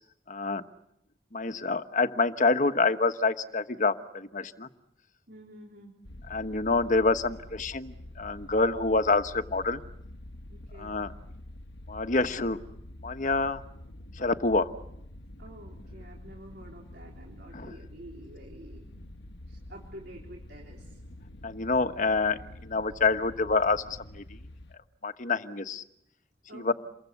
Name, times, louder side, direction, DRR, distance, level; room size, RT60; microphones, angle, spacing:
voice 1, 0.3-0.6 1.3-4.7 6.3-9.8 10.8-11.1 11.9-12.6 13.0-13.6 14.1-14.7 17.5-17.7 21.4-24.4 25.0-25.8 26.5-26.7, left 3 dB, 45° left, 9 dB, 1.3 m, -27 dB
voice 2, 5.3-5.9 10.5-11.0 15.4-19.0 19.5-21.0 26.5-26.7, right 1 dB, 65° right, 0 dB, 3.6 m, -49 dB
sound 1, 6.0-24.7, left 1 dB, 85° left, 1.2 m, -47 dB
29.0 x 23.5 x 8.2 m, 0.76 s
head